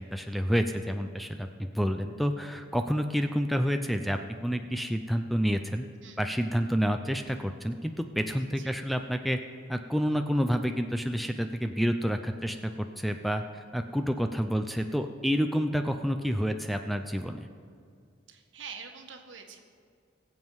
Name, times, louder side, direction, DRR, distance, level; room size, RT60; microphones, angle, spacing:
voice 1, 0.0-5.9 6.2-9.4 9.7-17.5, equal, ahead, 6 dB, 0.4 m, -29 dB
voice 2, 8.4-8.7 18.3-19.6, right 6 dB, 70° right, 4 dB, 1.5 m, -45 dB
22.0 x 7.4 x 4.7 m, 2.3 s
head